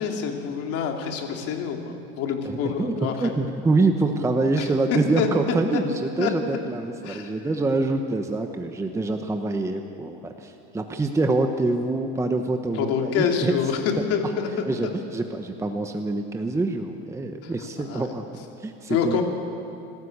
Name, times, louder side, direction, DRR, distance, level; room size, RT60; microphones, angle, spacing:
voice 1, 0.0-3.3 4.6-5.3 5.7-5.8 6.2-6.3 7.0-7.3 12.7-13.8 14.1-14.9 17.4-18.1 18.9-19.2, left 7 dB, 50° left, 3 dB, 2.9 m, -27 dB
voice 2, 2.4-13.5 14.7-18.2 18.6-19.2, right 2 dB, 10° right, 5 dB, 1.0 m, -25 dB
26.0 x 13.0 x 8.5 m, 2.6 s
supercardioid pair, 130°, 30 cm